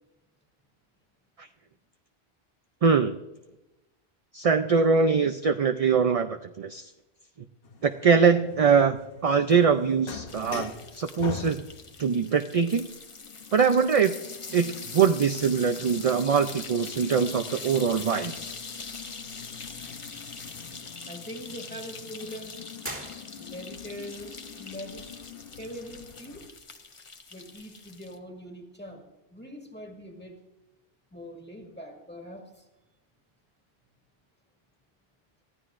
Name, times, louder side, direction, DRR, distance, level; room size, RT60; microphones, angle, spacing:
voice 1, 2.8-3.2 4.3-6.9 7.8-9.0 9.2-11.6 12.0-12.9 13.5-14.1 14.5-18.3, right 6 dB, 45° right, 8 dB, 0.5 m, -23 dB
sound 1, 7.6-26.5, left 7 dB, 65° left, 1.0 m, -45 dB
sound 2, 10.3-28.2, left 4 dB, 35° left, 0.8 m, -43 dB
voice 2, 21.1-22.5 23.4-25.1 25.5-26.5 27.3-30.4 31.1-32.6, equal, 10° left, 1 dB, 1.9 m, -42 dB
sound 3, 22.8-23.9, right 1 dB, 10° right, 1.8 m, -40 dB
22.0 x 14.5 x 2.5 m, 1.0 s
omnidirectional pair, 1.0 m